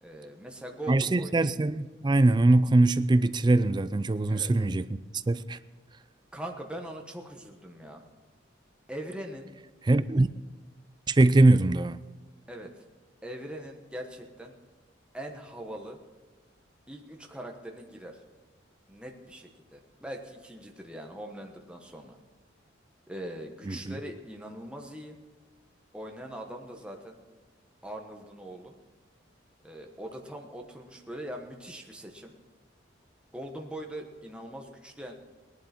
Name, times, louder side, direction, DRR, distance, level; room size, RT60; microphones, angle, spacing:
voice 1, 0.0-1.5 4.3-4.5 6.3-8.0 8.9-9.5 12.5-12.7 13.2-14.5 15.1-16.0 16.9-18.2 18.9-22.2 23.1-25.2 25.9-27.2 27.8-28.7 29.6-32.3 33.3-35.1, right 1 dB, 5° right, 1.2 m, -41 dB
voice 2, 0.9-4.9 5.1-5.6 9.9-10.3 11.1-12.0 23.7-24.0, right 2 dB, 25° right, 0.4 m, -22 dB
18.5 x 11.5 x 4.4 m
head